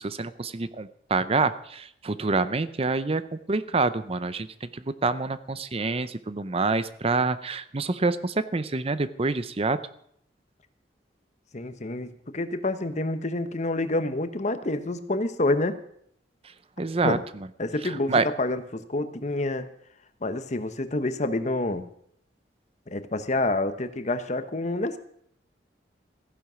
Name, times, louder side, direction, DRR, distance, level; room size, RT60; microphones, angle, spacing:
voice 1, 0.0-9.8 16.4-17.2 17.8-18.3, right 3 dB, 35° right, 14 dB, 0.6 m, -27 dB
voice 2, 11.5-15.8 17.0-17.2 17.6-19.7 20.2-21.9 22.9-25.0, left 2 dB, 40° left, 11 dB, 1.0 m, -28 dB
15.0 x 10.5 x 6.2 m, 0.67 s
head